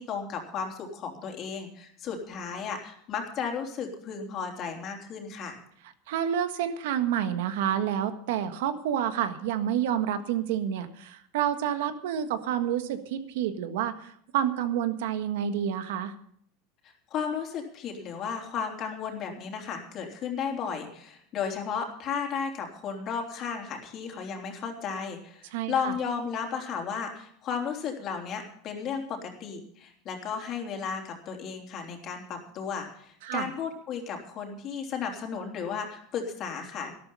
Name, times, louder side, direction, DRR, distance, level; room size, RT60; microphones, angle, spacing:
voice 1, 0.0-5.6 17.1-36.9, left 6 dB, 40° left, 2 dB, 3.2 m, -34 dB
voice 2, 6.1-16.1 25.5-25.9 33.2-33.5, right 9 dB, 80° right, 9 dB, 1.5 m, -29 dB
12.5 x 12.5 x 5.5 m, 0.65 s
supercardioid pair, 140°, 0 cm